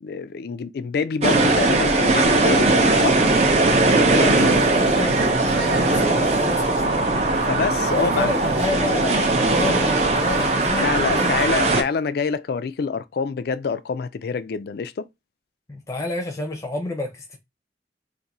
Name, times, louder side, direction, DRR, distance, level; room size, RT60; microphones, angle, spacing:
voice 1, 0.0-3.3 7.5-8.4 10.8-15.1, left 5 dB, 60° left, 0.3 m, -26 dB
sound 1, 1.2-11.8, right 2 dB, 35° right, 0.6 m, -19 dB
voice 2, 4.1-7.1 7.9-11.3 15.7-17.4, left 2 dB, 15° left, 0.6 m, -30 dB
sound 2, 4.1-10.7, right 1 dB, 70° right, 1.0 m, -33 dB
2.6 x 2.5 x 4.1 m
head